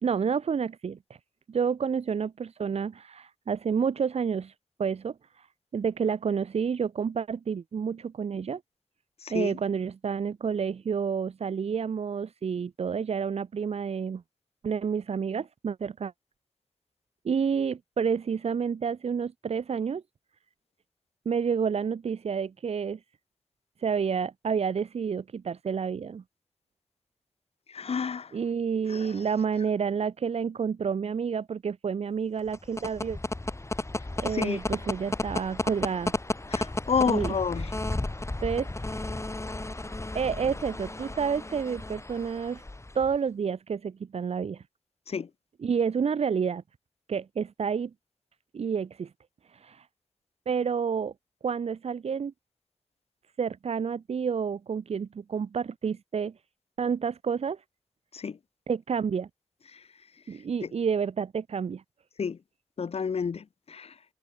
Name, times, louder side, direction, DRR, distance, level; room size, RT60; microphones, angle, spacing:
voice 1, 0.0-1.2 1.5-4.5 4.8-5.5 5.7-8.6 9.3-14.2 14.6-16.1 17.2-20.0 21.3-23.0 23.8-26.2 28.3-33.2 34.2-36.1 37.0-37.4 38.4-39.0 40.1-42.6 42.9-44.6 45.6-46.6 47.1-47.9 48.5-49.1 49.5-49.9 50.5-51.1 51.4-52.3 53.4-56.3 56.8-57.6 58.7-59.3 60.3-61.8, right 6 dB, 85° right, 2.5 m, -29 dB
voice 2, 9.2-9.5 27.7-28.3 28.9-29.1 34.3-34.6 36.5-37.7 45.1-45.3 58.1-58.4 62.2-62.4 62.8-63.9, left 6 dB, 75° left, 1.9 m, -30 dB
sound 1, 32.4-43.2, left 2 dB, 25° left, 3.1 m, -33 dB
cardioid pair, 45°, 10 cm